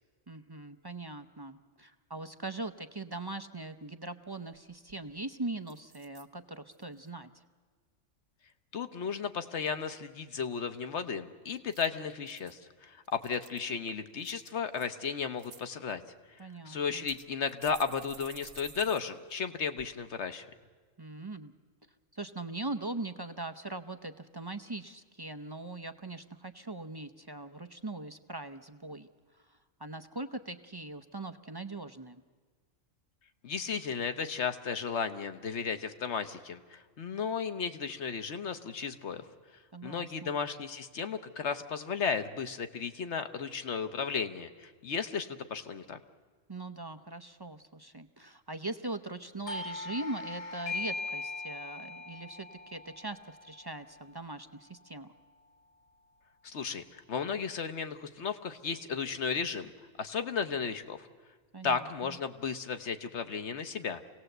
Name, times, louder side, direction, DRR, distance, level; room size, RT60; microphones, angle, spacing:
voice 1, 0.3-7.4 16.4-17.1 21.0-21.5 22.1-29.1 29.5-32.2 39.7-40.3 46.5-55.1 61.5-62.2, right 2 dB, 30° right, 8 dB, 0.4 m, -41 dB
sound 1, 4.9-5.2 5.7-6.3 6.7-7.1 11.6-12.5 13.0-13.7 14.2-14.9 15.2-15.6 16.4-16.5 17.1-19.0 19.3-19.4 19.8-19.9, right 6 dB, 65° right, 1.6 m, -52 dB
voice 2, 8.7-16.0 16.6-20.5 33.4-39.2 39.8-46.0 56.4-59.7 60.0-61.1 61.6-64.0, left 6 dB, 60° left, 9 dB, 1.3 m, -34 dB
Doorbell, 49.5-54.7, left 3 dB, 75° left, 1.8 m, -40 dB
26.0 x 17.5 x 7.9 m, 1.5 s
omnidirectional pair, 1.4 m